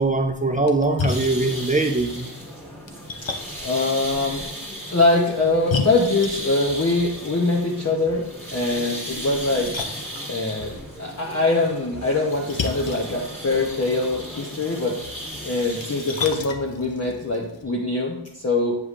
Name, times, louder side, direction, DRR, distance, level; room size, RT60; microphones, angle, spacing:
voice 1, 0.0-2.3, right 2 dB, 15° right, 4 dB, 0.6 m, -22 dB
Splash splatter, 0.5-17.6, left 5 dB, 65° left, 0.7 m, -36 dB
sound 1, 1.1-16.4, equal, 5° left, 1.8 m, -36 dB
voice 2, 3.6-4.5 4.9-8.2 8.5-9.8 10.3-15.0 15.4-18.8, left 2 dB, 30° left, -1 dB, 0.8 m, -23 dB
8.3 x 4.9 x 2.5 m, 0.81 s
wide cardioid pair, 55°, 49 cm